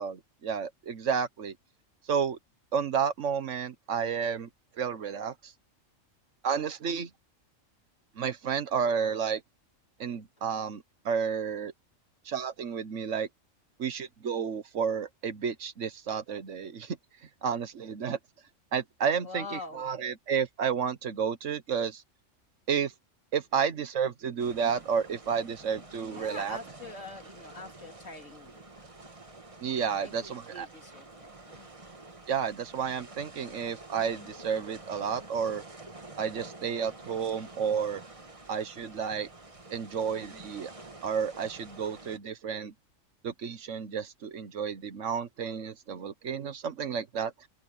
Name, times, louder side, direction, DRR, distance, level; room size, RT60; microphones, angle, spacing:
voice 1, 0.0-1.5 2.1-2.4 2.7-4.5 4.7-5.5 6.4-7.1 8.2-9.4 10.0-11.7 12.2-13.3 13.8-17.0 17.4-18.2 18.7-22.0 22.7-22.9 23.3-26.6 29.6-30.7 32.3-35.6 36.2-38.0 38.5-39.3 39.7-40.7 41.0-42.7 43.2-47.5, right 7 dB, 70° right, 1.4 m, -31 dB
voice 2, 19.2-19.9 26.1-28.9 30.0-31.7, left 3 dB, 75° left, 3.5 m, -44 dB
sound 1, 24.4-42.2, right 2 dB, 25° right, 1.8 m, -48 dB
open air
omnidirectional pair, 1.3 m